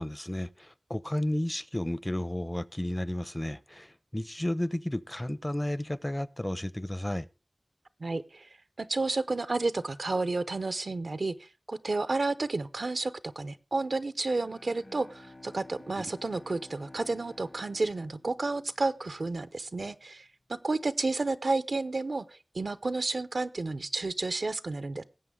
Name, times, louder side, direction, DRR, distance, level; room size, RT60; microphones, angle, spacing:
voice 1, 0.0-7.3 16.0-16.1, left 1 dB, 20° left, 0.5 m, -32 dB
voice 2, 8.0-8.5 8.8-25.0, right 3 dB, 90° right, 0.6 m, -31 dB
Bowed string instrument, 14.3-19.2, left 2 dB, 50° left, 0.9 m, -52 dB
18.5 x 7.7 x 3.6 m
wide cardioid pair, 55°, 0 cm